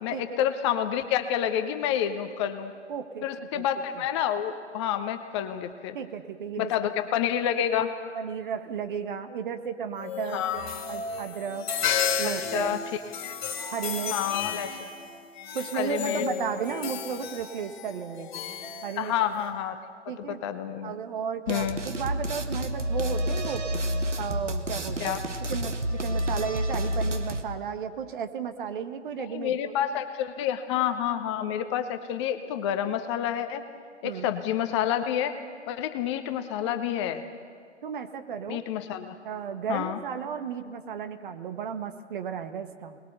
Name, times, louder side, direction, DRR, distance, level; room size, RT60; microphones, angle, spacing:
voice 1, 0.0-2.7 3.2-6.0 6.6-7.9 10.3-10.6 12.5-12.8 13.2-13.4 14.1-14.9 15.7-16.3 19.0-19.8 20.3-20.9 21.5-21.8 25.0-25.2 29.3-33.6 34.0-35.4 35.7-37.3 38.5-39.1 39.7-40.0, left 10 dB, 25° left, 8 dB, 0.8 m, -28 dB
voice 2, 2.9-3.6 3.9-4.0 5.9-6.9 8.1-11.7 12.2-12.8 13.7-14.2 15.5-18.3 18.8-19.1 20.1-20.4 20.8-23.7 24.2-29.7 34.0-34.3 37.8-38.6 39.2-43.0, right 7 dB, 45° right, 8 dB, 1.4 m, -34 dB
sound 1, 10.0-19.5, left 7 dB, 40° left, 3.0 m, -33 dB
sound 2, 21.5-27.4, equal, 80° right, 1.6 m, -29 dB
26.0 x 20.5 x 6.8 m, 2.1 s
figure-of-eight pair, 120°, 36 cm